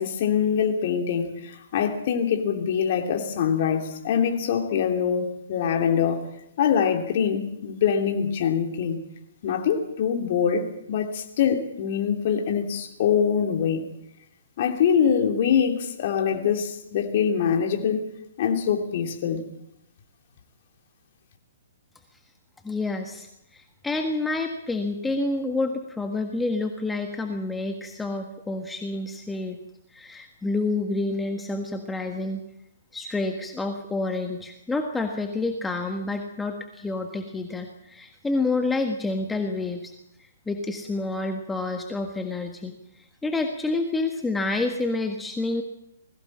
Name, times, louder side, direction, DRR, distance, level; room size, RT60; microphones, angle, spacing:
voice 1, 0.0-6.2 6.6-9.0 9.4-13.9 14.6-18.0 18.4-19.4, left 7 dB, 50° left, 3 dB, 3.1 m, -24 dB
voice 2, 22.6-29.6 29.9-32.4 32.9-39.9 40.2-45.6, left 2 dB, 10° left, 4 dB, 1.6 m, -28 dB
21.5 x 16.5 x 7.5 m, 0.81 s
figure-of-eight pair, 125°, 0 cm